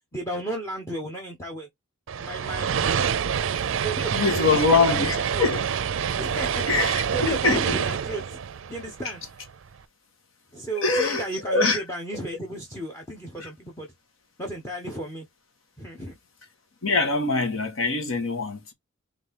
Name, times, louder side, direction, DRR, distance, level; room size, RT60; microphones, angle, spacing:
voice 1, 0.1-1.7 2.2-2.7 3.7-5.4 6.2-8.4 8.7-9.2 10.5-13.9 14.4-15.3 15.8-16.2, right 1 dB, 15° left, 1.0 m, -34 dB
sound 1, 2.1-9.5, right 7 dB, 70° right, 0.4 m, -27 dB
voice 2, 4.1-5.7 6.7-7.8 9.0-9.1 10.7-11.8 13.4-13.5 16.8-18.7, left 3 dB, 80° left, 1.4 m, -24 dB
4.1 x 3.5 x 3.6 m
head